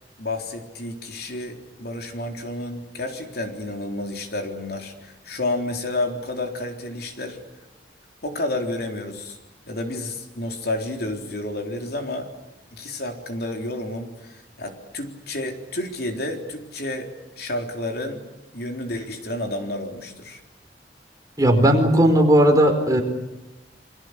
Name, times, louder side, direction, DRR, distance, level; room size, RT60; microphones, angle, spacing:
voice 1, 0.2-7.4 8.2-9.4 9.7-12.3 12.7-18.2 18.5-20.4, left 2 dB, 60° left, 4 dB, 3.9 m, -30 dB
voice 2, 21.4-23.0, right 1 dB, 20° right, 3 dB, 4.7 m, -16 dB
28.0 x 24.5 x 8.3 m, 0.97 s
head